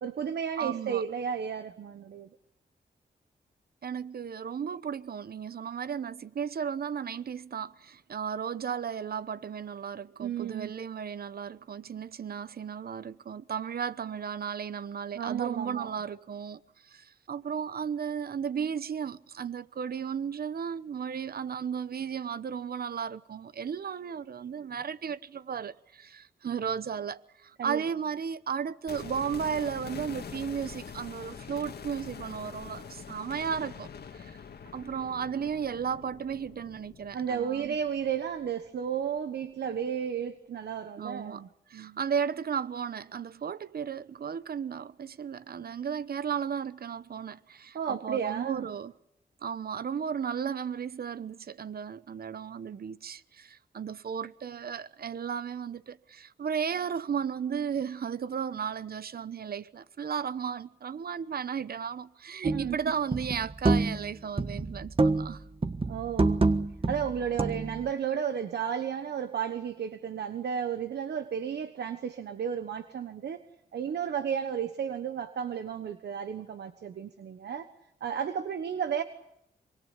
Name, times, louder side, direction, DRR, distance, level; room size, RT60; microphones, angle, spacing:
voice 1, 0.0-2.3 10.2-10.7 15.1-15.9 27.6-27.8 37.1-42.0 47.7-48.6 62.5-62.8 65.9-66.4 66.9-73.4 73.7-77.7 78.0-79.0, right 8 dB, 90° right, 1.2 m, -33 dB
voice 2, 0.6-1.0 3.8-34.4 34.7-37.8 41.0-41.4 41.7-48.9 49.4-65.4, right 7 dB, 65° right, 0.9 m, -34 dB
sound 1, 28.9-38.9 39.2-39.3, left 6 dB, 75° left, 1.8 m, -45 dB
sound 2, 62.4-62.7 63.1-64.1 64.4-65.4 65.6-67.9, right 3 dB, 35° right, 1.5 m, -27 dB
25.5 x 24.0 x 8.5 m
cardioid pair, 75°, 17 cm